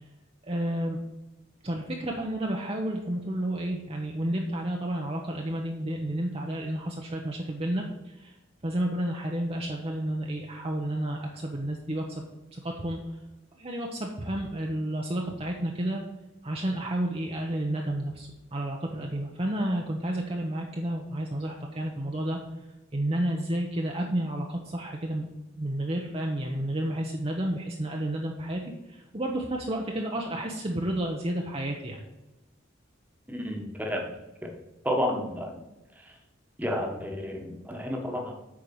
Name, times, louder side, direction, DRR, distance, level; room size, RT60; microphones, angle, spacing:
voice 1, 0.4-1.0 1.6-8.4 8.6-12.2 12.5-13.2 13.6-16.0 16.4-22.4 22.9-25.3 25.6-32.0, right 1 dB, 30° right, 0 dB, 0.8 m, -31 dB
voice 2, 33.3-34.1 34.4-34.5 34.8-35.6 35.9-36.2 36.6-38.3, equal, 10° right, 2 dB, 1.4 m, -31 dB
8.6 x 4.7 x 6.9 m, 1.0 s
head